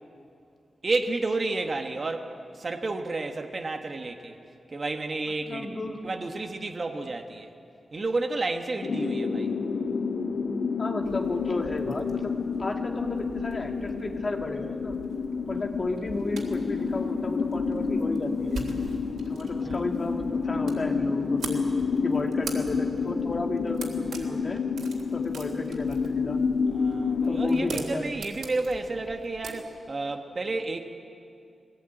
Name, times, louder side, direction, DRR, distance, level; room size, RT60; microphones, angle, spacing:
voice 1, 0.8-4.4 4.7-7.5 7.9-9.5 19.6-19.8 26.7-30.9, right 3 dB, 35° right, 4 dB, 1.3 m, -31 dB
voice 2, 5.5-6.0 10.8-12.3 12.6-15.0 15.5-18.6 19.3-21.6 22.0-24.6 25.1-26.4 27.2-28.1, left 2 dB, 40° left, 2 dB, 2.1 m, -33 dB
sound 1, 8.8-27.7, left 5 dB, 80° left, 2.0 m, -29 dB
sound 2, 11.0-29.5, right 3 dB, 85° right, 3.5 m, -43 dB
22.5 x 18.0 x 8.9 m, 2.5 s
wide cardioid pair, 130°, 0 cm